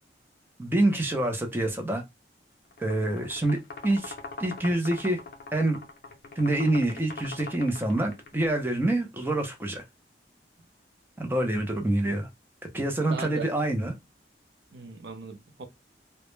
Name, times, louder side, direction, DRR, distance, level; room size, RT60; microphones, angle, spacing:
voice 1, 0.6-2.0 2.8-3.6 3.8-4.1 4.4-5.2 5.5-5.8 6.4-9.8 11.2-12.3 12.7-13.9, right 1 dB, 10° right, 0.5 m, -26 dB
sound 1, 2.7-8.5, left 3 dB, 60° left, 0.5 m, -42 dB
voice 2, 13.1-13.5 14.7-15.7, right 4 dB, 65° right, 0.5 m, -38 dB
2.1 x 2.0 x 3.0 m
head